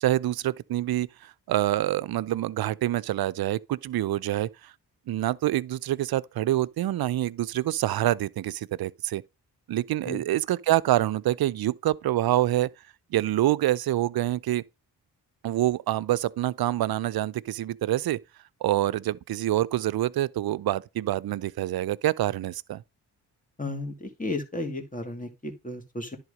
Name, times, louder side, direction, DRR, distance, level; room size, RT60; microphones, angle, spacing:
voice 1, 0.0-4.7 5.1-9.2 9.7-12.7 13.1-14.6 15.4-18.2 18.6-22.8, right 14 dB, 55° right, 0.6 m, -26 dB
voice 2, 23.6-26.2, left 2 dB, 20° left, 2.6 m, -34 dB
10.5 x 3.7 x 5.1 m
supercardioid pair, 40°, 45 cm